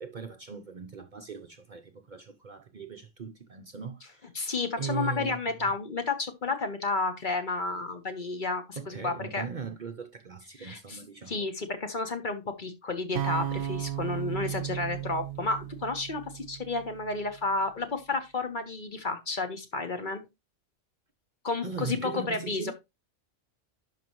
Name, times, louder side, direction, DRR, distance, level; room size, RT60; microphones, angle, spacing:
voice 1, 0.0-4.3 4.8-5.4 8.7-11.4 21.6-22.7, right 5 dB, 45° right, 0.7 m, -39 dB
voice 2, 4.3-9.4 10.6-11.0 11.3-20.2 21.4-22.7, left 3 dB, 40° left, 1.2 m, -31 dB
sound 1, 13.2-17.3, right 12 dB, 70° right, 0.9 m, -35 dB
11.0 x 5.2 x 3.0 m
omnidirectional pair, 1.3 m